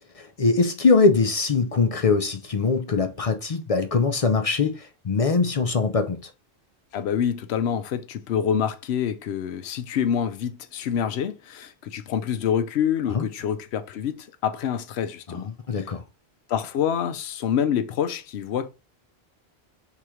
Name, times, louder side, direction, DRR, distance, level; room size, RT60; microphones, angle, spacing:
voice 1, 0.1-6.3 13.1-13.2 15.3-16.0, left 4 dB, 45° left, 0.5 m, -22 dB
voice 2, 6.9-15.5 16.5-18.7, left 8 dB, 80° left, 0.8 m, -26 dB
3.7 x 3.0 x 4.8 m
omnidirectional pair, 1.1 m